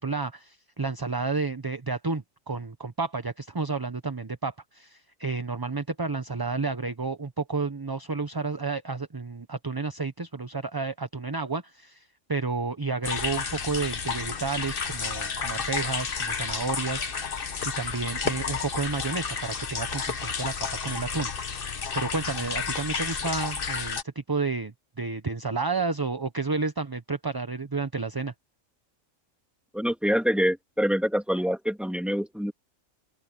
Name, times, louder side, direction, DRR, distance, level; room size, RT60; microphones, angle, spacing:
voice 1, 0.0-20.5 20.8-28.3, right 4 dB, 20° right, 0.7 m, -31 dB
sound 1, 13.0-24.0, left 6 dB, 45° left, 1.2 m, -31 dB
voice 2, 29.7-32.5, equal, ahead, 2.5 m, -25 dB
omnidirectional pair, 1.3 m